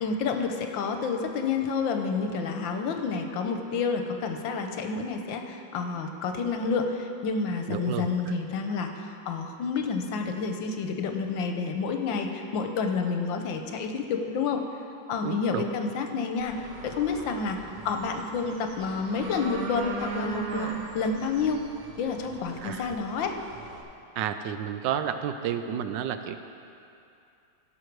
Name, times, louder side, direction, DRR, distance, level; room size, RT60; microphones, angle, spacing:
voice 1, 0.0-14.6 15.1-16.5 16.8-21.6 22.0-23.3, left 4 dB, 80° left, 5 dB, 1.5 m, -29 dB
voice 2, 7.7-8.3 15.2-15.7 22.6-23.0 24.2-26.4, right 9 dB, 75° right, 8 dB, 1.2 m, -31 dB
sound 1, 16.4-23.8, right 4 dB, 60° right, 1.4 m, -39 dB
16.5 x 6.4 x 4.6 m, 2.6 s
omnidirectional pair, 2.1 m